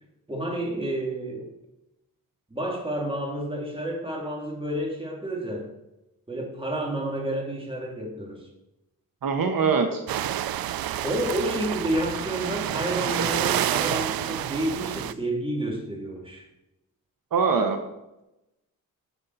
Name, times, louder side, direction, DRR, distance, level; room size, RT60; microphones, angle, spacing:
voice 1, 0.3-1.5 2.5-5.7 6.3-8.5 11.0-16.4, right 1 dB, 15° right, -1 dB, 2.9 m, -30 dB
voice 2, 9.2-10.0 17.3-17.8, right 5 dB, 70° right, 5 dB, 1.1 m, -22 dB
sound 1, 10.1-15.1, right 11 dB, 90° right, 0.5 m, -28 dB
11.0 x 7.0 x 4.2 m, 0.92 s
wide cardioid pair, 95°, 35 cm